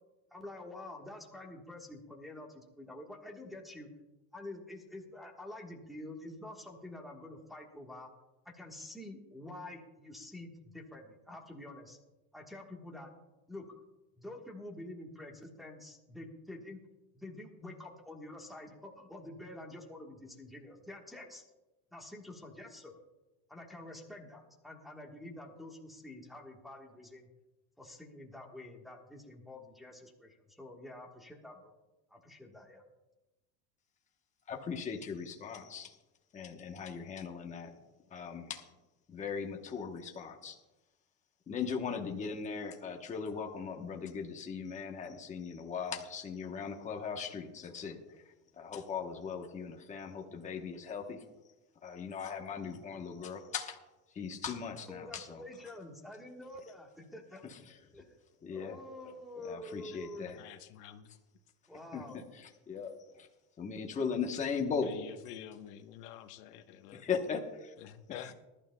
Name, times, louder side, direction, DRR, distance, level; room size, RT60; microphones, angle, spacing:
voice 1, 0.3-3.9 4.3-8.1 8.4-12.0 12.3-13.1 13.5-13.6 14.2-16.8 17.1-21.4 21.9-22.9 23.5-27.3 27.8-31.7 32.1-32.8 54.9-57.4 58.5-60.3 61.7-62.2, left 1 dB, ahead, -1 dB, 1.3 m, -47 dB
voice 2, 34.5-36.0 36.3-37.7 38.1-38.6 39.1-40.6 41.5-48.0 48.6-51.2 51.8-53.8 54.1-55.4 58.4-58.8 59.5-60.4 61.9-62.0 62.4-62.9 63.2-63.3 63.6-64.9 67.0-67.7 68.1-68.3, left 6 dB, 15° left, 2 dB, 0.9 m, -38 dB
voice 3, 60.3-61.1 64.8-67.0 67.8-68.3, left 10 dB, 85° left, 7 dB, 1.2 m, -48 dB
20.0 x 12.0 x 2.2 m, 1.0 s
cardioid pair, 160°, 45 cm